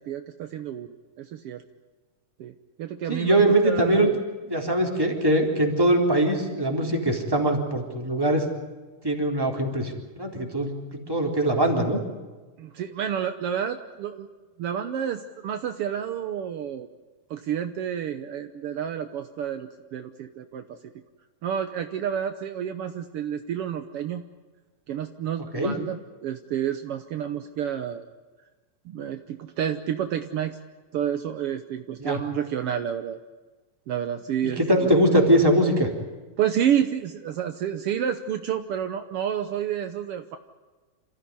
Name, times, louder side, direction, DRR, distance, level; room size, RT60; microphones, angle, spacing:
voice 1, 0.0-1.6 2.4-2.5 2.8-4.1 12.6-14.3 14.6-16.9 17.3-20.8 21.4-24.2 24.9-28.1 28.8-30.6 30.9-33.2 33.9-35.0 36.4-40.4, right 9 dB, 75° right, 8 dB, 1.3 m, -29 dB
voice 2, 3.1-4.1 4.5-8.5 9.0-9.9 10.2-10.7 11.1-12.0 25.5-25.7 32.0-32.2 34.4-35.9, right 1 dB, 5° right, 1 dB, 3.4 m, -22 dB
27.5 x 15.0 x 9.7 m, 1.3 s
omnidirectional pair, 3.9 m